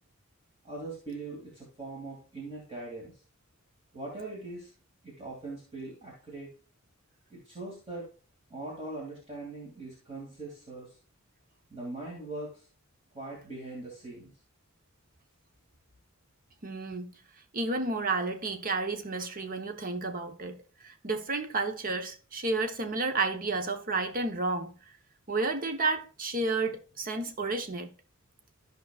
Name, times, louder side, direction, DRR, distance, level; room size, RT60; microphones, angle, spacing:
voice 1, 0.6-3.1 3.9-4.7 5.0-6.5 7.3-8.1 8.5-11.0 11.7-12.7 13.1-14.3, right 2 dB, 25° right, 2.5 m, -41 dB
voice 2, 16.6-17.1 17.5-20.6 20.8-24.8 25.3-27.9, right 3 dB, 40° right, 0.9 m, -31 dB
13.5 x 5.3 x 2.4 m
head